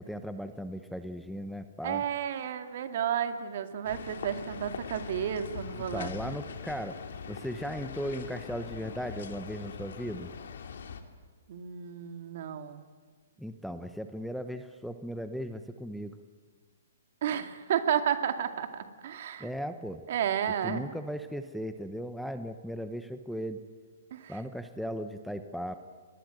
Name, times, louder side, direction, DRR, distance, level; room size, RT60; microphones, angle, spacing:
voice 1, 0.0-2.0 5.9-7.0 7.3-10.3 13.4-16.2 19.4-20.0 20.6-23.6 24.3-25.8, equal, ahead, 8 dB, 1.0 m, -37 dB
voice 2, 1.8-6.3 11.5-12.8 17.2-19.5 20.1-20.8 24.1-24.4, right 9 dB, 55° right, 8 dB, 2.2 m, -32 dB
sound 1, 3.8-11.0, left 6 dB, 70° left, 2.6 m, -42 dB
25.0 x 20.0 x 9.2 m, 1.5 s
hypercardioid pair, 145°, 0 cm